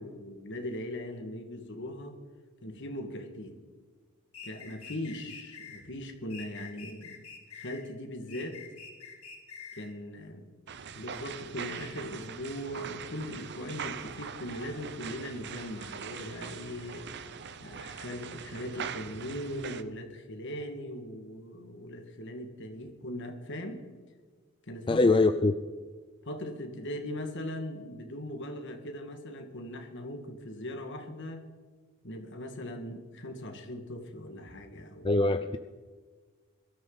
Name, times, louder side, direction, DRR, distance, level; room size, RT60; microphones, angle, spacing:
voice 1, 0.0-2.2 2.6-3.6 4.4-7.3 7.5-8.6 9.8-10.5 10.9-17.1 17.6-23.8 24.7-25.1 26.3-31.5 32.0-35.1, left 1 dB, 55° left, 5 dB, 1.9 m, -39 dB
sound 1, 4.3-5.8 6.3-7.8 8.3-9.9, left 5 dB, 75° left, 3.1 m, -47 dB
sound 2, 10.7-19.8, right 7 dB, 50° right, 0.7 m, -42 dB
voice 2, 24.9-25.5 35.0-35.6, left 3 dB, 20° left, 9 dB, 0.4 m, -23 dB
22.5 x 13.0 x 4.0 m, 1.5 s
head